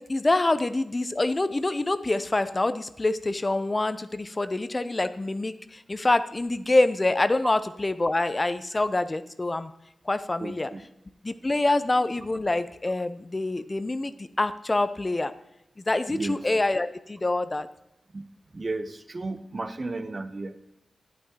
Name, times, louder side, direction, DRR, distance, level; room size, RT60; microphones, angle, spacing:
voice 1, 0.0-9.7 10.1-10.7 11.2-15.3 15.9-17.7, left 2 dB, 35° left, 12 dB, 0.4 m, -26 dB
voice 2, 10.4-10.9 16.1-16.4 18.1-18.2 18.5-20.6, right 3 dB, 45° right, 10 dB, 0.6 m, -33 dB
8.8 x 8.4 x 2.8 m, 0.82 s
cardioid pair, 45°, 0 cm